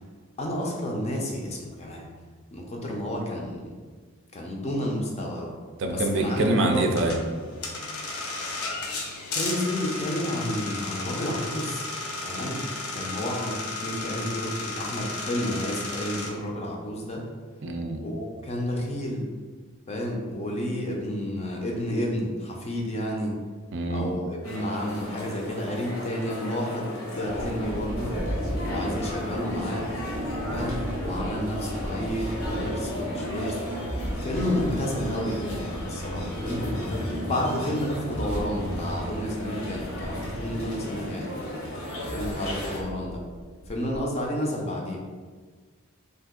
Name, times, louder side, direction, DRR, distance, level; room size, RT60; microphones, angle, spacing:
voice 1, 0.4-2.0 2.5-3.7 4.3-5.5 5.9-7.1 9.3-11.9 12.2-12.6 12.9-17.2 18.0-19.3 19.9-23.4 23.9-28.1 28.7-29.9 30.5-33.6 34.2-41.3 42.0-43.2 43.7-45.0, left 1 dB, 30° left, 0 dB, 0.5 m, -31 dB
voice 2, 5.8-7.2 17.6-18.0 23.7-24.1, right 2 dB, 60° right, 4 dB, 0.4 m, -25 dB
sound 1, 7.0-16.3, left 3 dB, 90° left, 0.6 m, -34 dB
sound 2, 24.4-42.8, left 1 dB, 70° left, 0.9 m, -37 dB
sound 3, 27.2-44.0, equal, 15° right, 0.7 m, -34 dB
2.7 x 2.5 x 3.7 m, 1.5 s
head